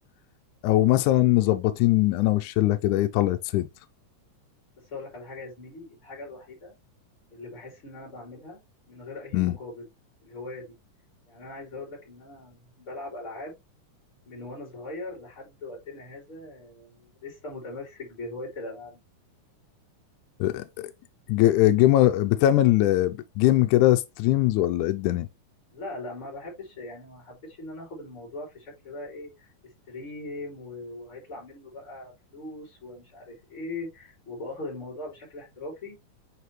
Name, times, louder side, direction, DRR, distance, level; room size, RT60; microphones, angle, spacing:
voice 1, 0.6-3.7 9.3-9.6 20.4-20.9 21.3-25.3, left 15 dB, 75° left, 2.0 m, -21 dB
voice 2, 4.8-6.7 7.3-8.6 8.9-9.9 10.2-10.7 11.3-13.5 14.3-19.0 25.7-36.0, left 2 dB, 40° left, 3.8 m, -40 dB
9.4 x 3.2 x 3.2 m
omnidirectional pair, 3.8 m